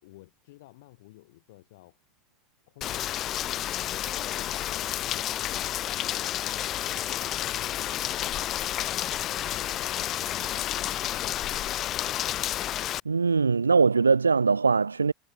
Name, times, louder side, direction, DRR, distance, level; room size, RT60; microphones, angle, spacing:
voice 1, 0.0-2.0 2.7-3.7 4.1-8.7 9.0-12.0, left 19 dB, 65° left, 7.3 m, -53 dB
Rain, 2.8-13.0, left 12 dB, 45° left, 1.9 m, -30 dB
voice 2, 13.1-15.1, right 4 dB, 90° right, 0.6 m, -21 dB
figure-of-eight pair, 75°, 0 cm